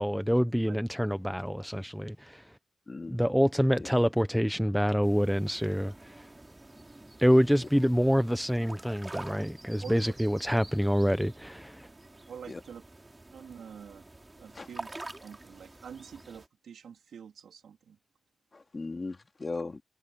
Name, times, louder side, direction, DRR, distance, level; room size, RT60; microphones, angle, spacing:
voice 1, 0.0-2.5 3.1-6.3 7.2-11.9, equal, ahead, 1.0 m, -26 dB
voice 2, 2.9-3.2 3.7-3.9 7.6-7.7 12.5-12.6 14.5-14.7 18.5-19.8, left 3 dB, 45° left, 2.8 m, -38 dB
sound 1, 5.0-16.5, right 2 dB, 30° right, 3.8 m, -47 dB
voice 3, 12.3-12.8 13.3-14.0 14.4-14.9 15.2-18.0, right 7 dB, 80° right, 2.8 m, -46 dB
supercardioid pair, 40°, 0 cm